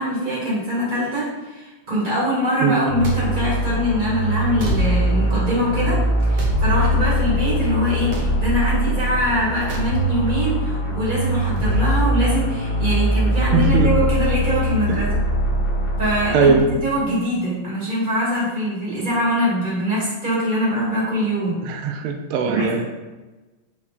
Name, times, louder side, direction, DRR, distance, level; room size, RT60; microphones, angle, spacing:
voice 1, 0.0-6.0 6.3-15.1 16.0-21.6 22.4-22.8, equal, 20° right, -7 dB, 2.3 m, -23 dB
sound 1, 2.9-17.0, equal, 55° left, 2.1 m, -22 dB
sound 2, 3.0-3.2 4.6-4.8 6.3-6.6 8.1-8.3 9.7-9.9, right 2 dB, 60° right, 1.5 m, -30 dB
voice 2, 13.5-13.9 14.9-15.2 16.3-16.7 21.6-22.8, right 5 dB, 90° right, 5 dB, 1.5 m, -20 dB
6.6 x 3.6 x 4.3 m, 1.2 s
omnidirectional pair, 2.3 m